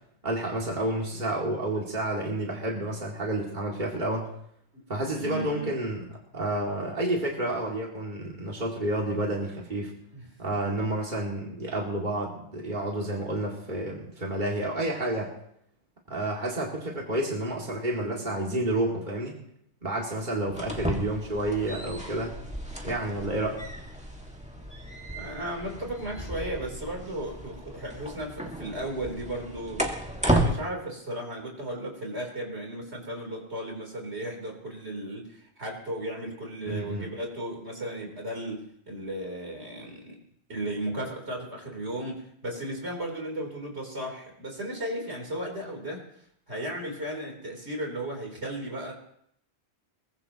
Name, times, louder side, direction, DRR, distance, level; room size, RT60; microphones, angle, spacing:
voice 1, 0.2-4.3 4.9-6.0 6.3-9.9 10.4-15.3 16.1-19.3 19.8-22.4 22.8-23.6 36.6-37.1, right 1 dB, 45° right, -2 dB, 2.6 m, -30 dB
voice 2, 5.1-5.7 10.1-10.3 25.2-29.9 30.3-40.2 40.5-46.1 46.5-48.9, right 1 dB, 70° right, 0 dB, 4.1 m, -35 dB
sound 1, 20.5-30.5, right 1 dB, 5° right, 1.9 m, -33 dB
22.5 x 20.0 x 3.0 m, 0.71 s
omnidirectional pair, 1.1 m